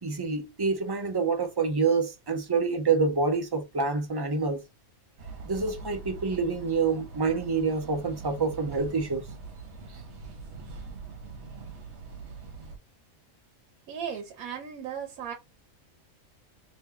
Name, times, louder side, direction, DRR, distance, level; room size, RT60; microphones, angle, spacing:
voice 1, 0.0-4.6 5.5-9.2, right 4 dB, 35° right, 0.4 m, -27 dB
sound 1, 5.2-12.8, right 4 dB, 55° right, 1.2 m, -43 dB
voice 2, 13.9-15.3, right 8 dB, 90° right, 1.1 m, -36 dB
3.5 x 3.0 x 2.8 m
omnidirectional pair, 1.4 m